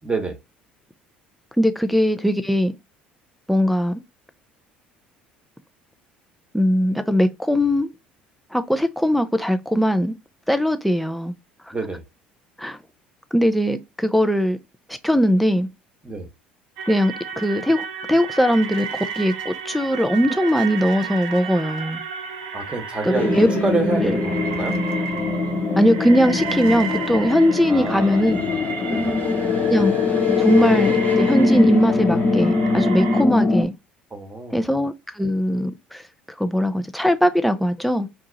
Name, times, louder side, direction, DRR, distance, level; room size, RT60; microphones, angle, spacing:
voice 1, 0.0-0.4 11.7-12.0 16.0-16.3 22.5-24.8 27.7-28.2 28.8-29.2 34.1-34.6, right 3 dB, 20° right, 1.1 m, -27 dB
voice 2, 1.6-2.7 3.5-4.0 6.5-7.9 8.5-10.2 10.5-11.3 12.6-12.8 13.3-14.6 15.0-15.7 16.9-22.0 23.0-23.5 24.0-24.2 25.8-28.4 29.7-29.9 30.4-33.7 34.5-36.0 36.4-38.1, equal, ahead, 0.5 m, -20 dB
sound 1, 16.8-33.2, right 6 dB, 65° right, 0.7 m, -33 dB
sound 2, 23.1-33.6, left 3 dB, 35° left, 1.0 m, -22 dB
2.8 x 2.3 x 3.9 m
hypercardioid pair, 60°, 5 cm